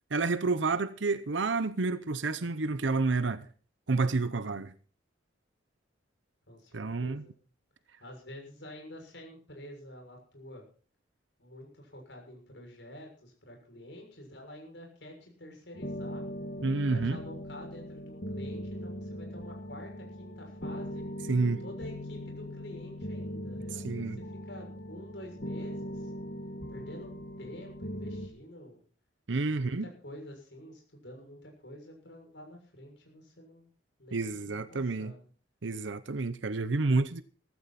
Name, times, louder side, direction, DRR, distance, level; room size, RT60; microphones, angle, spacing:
voice 1, 0.1-3.5 3.9-4.7 6.7-7.2 16.6-17.2 21.3-21.6 23.8-24.2 29.3-29.9 34.1-35.1 35.6-37.2, right 3 dB, 90° right, 0.8 m, -29 dB
voice 2, 6.5-7.3 8.0-10.6 11.4-16.3 16.9-21.1 21.4-26.1 26.7-28.8 29.5-33.7 34.0-35.3, left 1 dB, 75° left, 6.8 m, -48 dB
sound 1, 15.7-28.3, equal, 55° left, 1.6 m, -40 dB
15.5 x 15.5 x 4.2 m
head